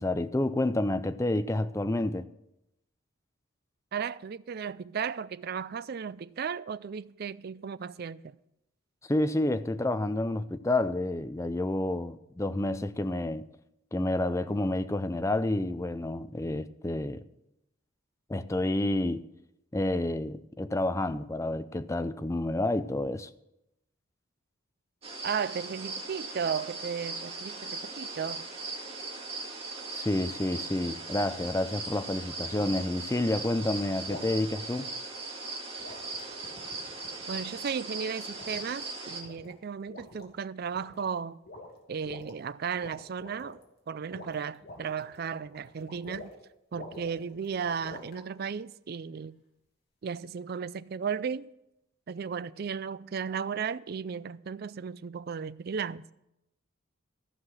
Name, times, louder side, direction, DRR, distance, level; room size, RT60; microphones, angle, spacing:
voice 1, 0.0-2.2 9.1-13.5 13.9-17.2 18.3-19.2 19.7-23.3 29.9-34.9, left 1 dB, 15° left, 0.4 m, -29 dB
voice 2, 3.9-8.3 25.2-28.4 37.3-41.4 41.9-43.6 43.9-46.3 46.7-49.4 50.0-51.5 52.1-56.0, right 6 dB, 50° right, 0.4 m, -35 dB
sound 1, 25.0-39.2, right 3 dB, 30° right, 2.2 m, -39 dB
sound 2, 31.3-31.6 32.5-32.8 34.1-34.4 35.8-37.7 38.3-38.8 39.1-39.5 39.9-40.3 40.6-41.1 41.4-42.3 42.8-43.6 44.0-46.4 46.7-48.2, left 2 dB, 50° left, 2.3 m, -47 dB
14.5 x 5.7 x 7.8 m
head